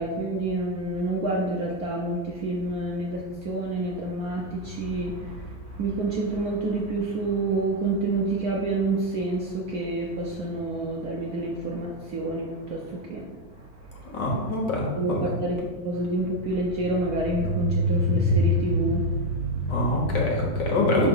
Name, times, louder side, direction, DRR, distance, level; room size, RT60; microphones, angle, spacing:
voice 1, 0.0-13.2 13.6-14.2 15.0-20.2, right 1 dB, 65° right, -2 dB, 0.9 m, -27 dB
voice 2, 14.1-15.2 19.7-21.1, left 2 dB, 60° left, -2 dB, 1.8 m, -25 dB
5.4 x 3.9 x 5.4 m, 1.3 s
omnidirectional pair, 2.2 m